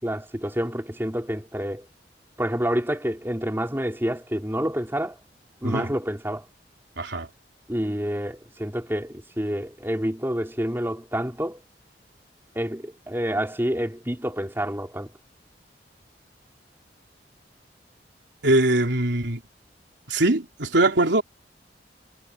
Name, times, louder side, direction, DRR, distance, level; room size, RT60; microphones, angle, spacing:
voice 1, 0.0-1.9 2.4-5.2 5.6-6.5 7.7-11.6 12.5-15.1, equal, 15° right, 4.6 m, -28 dB
voice 2, 7.0-7.3 18.4-19.4 20.1-21.2, right 2 dB, 90° right, 3.4 m, -22 dB
head